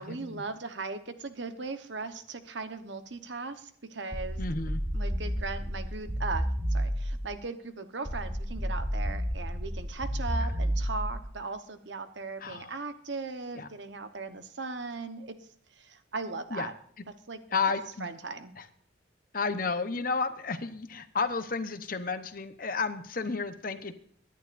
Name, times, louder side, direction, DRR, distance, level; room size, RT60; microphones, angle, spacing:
voice 1, 0.0-4.4 4.9-15.3 15.8-16.7 17.3-17.4 17.7-17.8 18.0-18.5, right 3 dB, 75° right, 9 dB, 1.1 m, -38 dB
sound 1, 4.1-7.4 8.1-11.4, equal, 10° right, 1.9 m, -31 dB
voice 2, 4.4-4.8 12.4-12.7 13.5-13.7 16.5-16.7 17.5-18.1 19.3-23.9, left 4 dB, 50° left, 10 dB, 1.0 m, -32 dB
23.5 x 10.5 x 2.6 m, 0.63 s
head